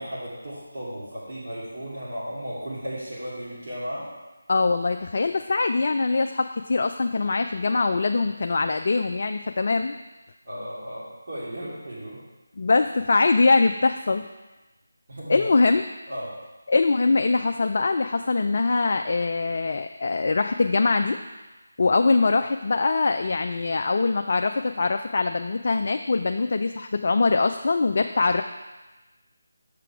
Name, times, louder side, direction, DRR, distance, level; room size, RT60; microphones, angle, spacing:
voice 1, 0.0-4.1 10.4-12.2 15.1-15.5 16.1-16.3, equal, 50° right, -7 dB, 2.6 m, -35 dB
voice 2, 4.5-10.0 12.6-14.3 15.3-15.8 16.7-21.2 21.8-28.4, left 3 dB, 50° left, 6 dB, 0.3 m, -22 dB
6.7 x 5.8 x 4.7 m, 1.1 s
figure-of-eight pair, 160°, 0 cm